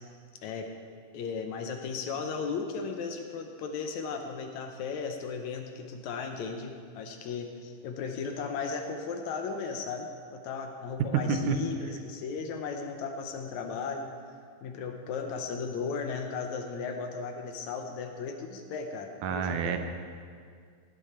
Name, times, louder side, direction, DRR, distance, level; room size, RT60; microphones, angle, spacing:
voice 1, 1.1-14.1 14.6-19.8, left 5 dB, 70° left, 5 dB, 2.0 m, -36 dB
voice 2, 19.2-19.8, right 5 dB, 80° right, 7 dB, 2.2 m, -28 dB
16.5 x 10.5 x 4.3 m, 2.1 s
omnidirectional pair, 3.7 m